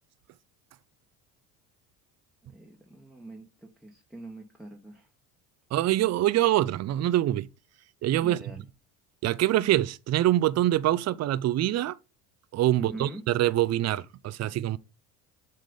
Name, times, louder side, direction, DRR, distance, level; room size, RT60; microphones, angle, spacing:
voice 1, 2.4-5.1 8.2-8.6 12.7-13.3, right 2 dB, ahead, 1.3 m, -44 dB
voice 2, 5.7-7.5 8.0-8.4 9.2-12.0 12.5-14.8, right 14 dB, 35° right, 0.5 m, -24 dB
7.6 x 3.3 x 5.2 m
hypercardioid pair, 75°, 46 cm